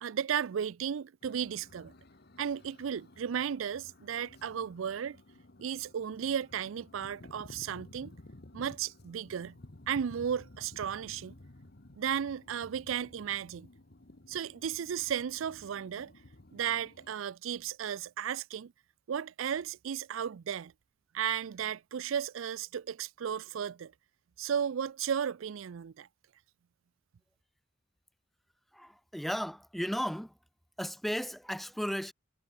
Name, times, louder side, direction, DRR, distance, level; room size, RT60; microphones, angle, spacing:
voice 1, 0.0-1.9 2.4-5.2 5.6-8.1 8.5-9.6 9.9-11.3 12.0-13.7 14.3-16.1 16.5-18.7 19.1-20.7 21.1-23.9 24.4-26.1, right 8 dB, 80° right, 0.4 m, -34 dB
sound 1, 1.2-17.1, left 1 dB, 55° left, 1.4 m, -54 dB
voice 2, 28.7-30.3 30.8-32.1, equal, ahead, 0.5 m, -35 dB
head